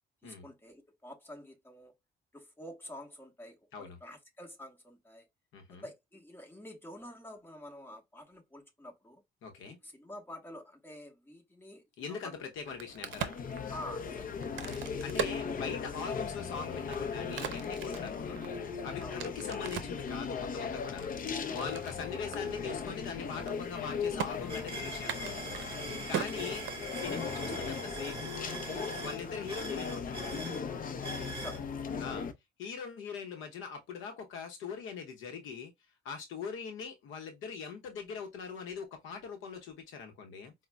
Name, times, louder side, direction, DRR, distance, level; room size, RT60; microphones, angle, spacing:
voice 1, 0.2-1.9 2.3-5.3 5.7-9.2 9.7-12.4 13.7-14.4 19.0-19.2 25.9-26.1 31.3-31.8, left 1 dB, 10° left, 1.2 m, -48 dB
voice 2, 5.5-5.9 9.4-9.8 12.0-13.4 15.0-18.4 18.8-21.1 21.5-25.5 26.1-26.7 27.0-28.6 29.0-30.4 32.0-32.3 32.6-35.7 36.0-40.5, left 6 dB, 90° left, 0.8 m, -41 dB
Crack, 12.5-16.2 16.7-20.0 20.6-22.0 22.3-22.4 22.7-23.0 23.3-23.8 24.2-24.3 25.0-27.2, right 8 dB, 70° right, 0.6 m, -39 dB
sound 1, 12.6-32.3, left 6 dB, 45° left, 0.6 m, -38 dB
sound 2, 23.1-23.2 23.5-31.6, right 2 dB, 30° right, 1.5 m, -43 dB
4.9 x 2.1 x 2.2 m
cardioid pair, 90°, 20 cm